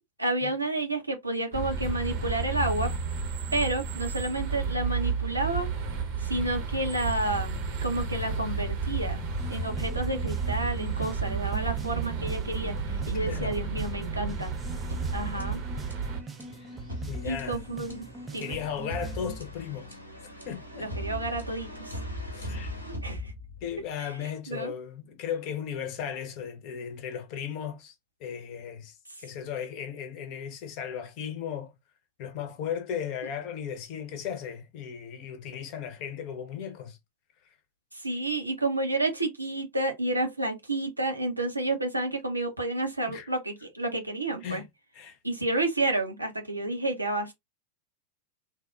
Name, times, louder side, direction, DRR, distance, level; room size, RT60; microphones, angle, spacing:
voice 1, 0.2-2.9 3.5-5.7 6.2-9.2 9.5-14.5 15.1-15.6 17.2-18.1 18.3-18.6 20.8-22.0 22.9-23.3 24.0-24.1 24.5-24.7 37.9-44.6 45.2-47.3, right 2 dB, 85° right, 0.8 m, -30 dB
sound 1, 1.5-16.2, right 5 dB, 45° right, 0.9 m, -32 dB
sound 2, 9.4-19.4, right 3 dB, 15° right, 0.5 m, -42 dB
voice 2, 13.2-13.6 16.5-16.8 17.1-17.6 18.4-20.0 20.4-20.9 22.1-22.8 23.6-27.9 28.2-31.8 32.2-37.0 43.1-43.3 44.4-44.7 44.9-45.2, left 8 dB, 45° left, 0.8 m, -36 dB
sound 3, 14.9-23.8, left 1 dB, 85° left, 0.8 m, -39 dB
3.4 x 2.3 x 2.3 m
figure-of-eight pair, 90°, 0 cm